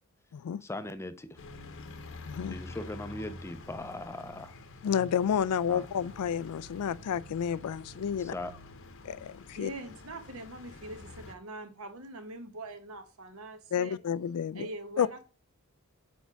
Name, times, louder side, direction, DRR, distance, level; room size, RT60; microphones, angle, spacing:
voice 1, 0.6-1.4 2.5-4.5 5.7-5.9 8.2-8.5, left 2 dB, 10° left, 0.4 m, -39 dB
sound 1, 1.4-11.3, left 2 dB, 60° left, 0.8 m, -47 dB
voice 2, 2.3-2.6 4.8-8.3 9.0-9.7 13.7-14.7 15.0-15.1, left 8 dB, 90° left, 0.3 m, -30 dB
voice 3, 9.6-14.0 14.5-15.2, right 2 dB, 70° right, 1.1 m, -43 dB
4.6 x 4.4 x 5.7 m
head